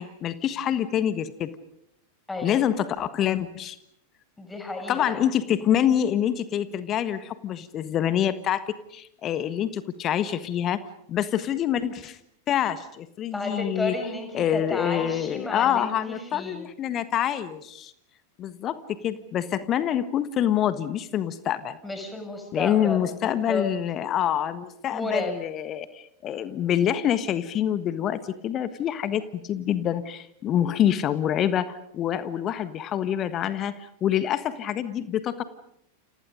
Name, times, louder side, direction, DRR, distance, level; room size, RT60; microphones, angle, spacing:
voice 1, 0.0-1.5 2.4-3.8 4.9-10.8 11.1-12.2 12.5-13.9 14.3-17.9 18.4-21.8 22.5-35.4, left 10 dB, 30° left, 13 dB, 1.4 m, -26 dB
voice 2, 2.3-2.7 4.4-5.2 13.3-16.7 21.8-23.7 24.9-25.3, left 2 dB, 10° left, 4 dB, 6.9 m, -32 dB
30.0 x 28.5 x 5.3 m, 0.71 s
figure-of-eight pair, 90°, 0 cm